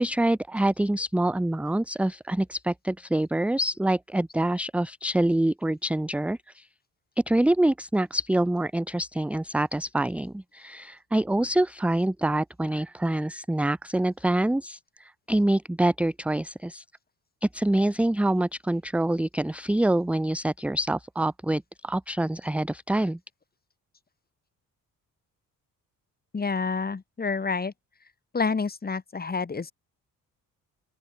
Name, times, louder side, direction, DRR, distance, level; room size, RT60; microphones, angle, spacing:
voice 1, 0.0-6.7 7.3-16.8 17.4-23.2, right 1 dB, 5° right, 0.7 m, -26 dB
voice 2, 26.3-27.7 28.3-29.7, left 4 dB, 25° left, 6.9 m, -28 dB
open air
cardioid pair, 120°, 34 cm